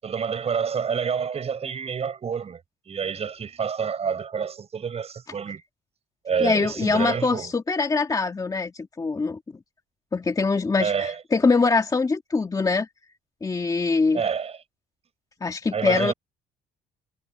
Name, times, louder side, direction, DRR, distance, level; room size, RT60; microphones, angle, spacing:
voice 1, 0.0-2.6 2.9-5.6 6.2-7.5 10.8-11.2 14.1-14.6 15.7-16.1, right 6 dB, 40° right, 6.0 m, -28 dB
voice 2, 6.4-9.4 10.1-12.9 13.4-14.2 15.4-16.1, left 4 dB, 20° left, 2.1 m, -23 dB
cardioid pair, 110°, 17 cm